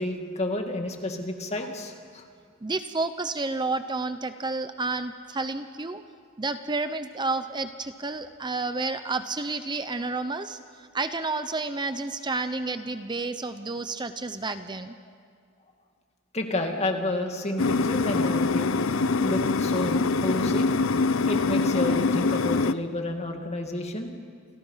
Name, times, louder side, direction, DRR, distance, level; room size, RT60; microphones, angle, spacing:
voice 1, 0.0-2.2 16.3-18.7 19.2-20.7 21.3-24.1, left 2 dB, 30° left, 3 dB, 2.5 m, -30 dB
voice 2, 2.6-6.0 6.4-10.6 10.9-14.9, right 3 dB, 20° right, 10 dB, 0.7 m, -30 dB
sound 1, 17.6-22.7, left 3 dB, 70° left, 0.7 m, -24 dB
29.5 x 28.0 x 5.7 m, 2.1 s
head